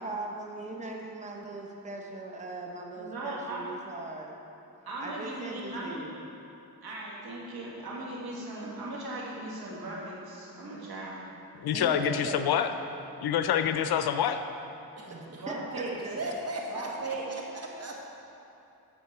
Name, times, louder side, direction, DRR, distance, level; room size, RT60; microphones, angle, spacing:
voice 1, 0.0-4.4 5.0-6.2 11.7-12.6 15.0-16.2, right 2 dB, 20° right, 0 dB, 0.9 m, -39 dB
voice 2, 3.0-3.7 4.8-6.1 6.8-11.3 15.3-15.9 16.7-17.2, right 2 dB, 70° right, -5 dB, 2.0 m, -38 dB
voice 3, 11.6-12.7 13.2-14.4, left 9 dB, 75° left, 9 dB, 0.5 m, -26 dB
voice 4, 15.0-15.5 16.2-18.0, right 1 dB, 40° right, -1 dB, 1.5 m, -38 dB
9.7 x 6.1 x 4.3 m, 2.8 s
cardioid pair, 80°, 38 cm